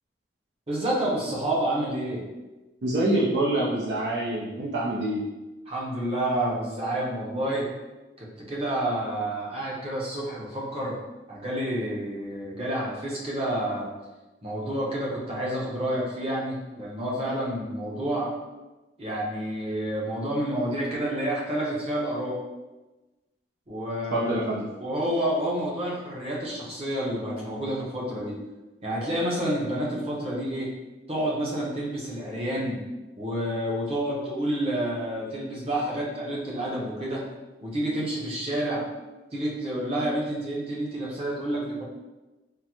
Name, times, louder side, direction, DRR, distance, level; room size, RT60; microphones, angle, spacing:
voice 1, 0.7-2.2 5.7-7.7 8.2-11.0 11.3-13.9 14.4-18.3 19.0-22.4 23.7-24.3 24.8-28.3 28.8-30.7 31.1-32.8 33.2-37.2 37.6-38.8 39.3-41.8, right 1 dB, 35° right, -4 dB, 0.7 m, -29 dB
voice 2, 2.8-5.2 24.1-24.4, right 1 dB, 80° right, -6 dB, 0.5 m, -25 dB
3.7 x 2.1 x 2.9 m, 1.1 s
head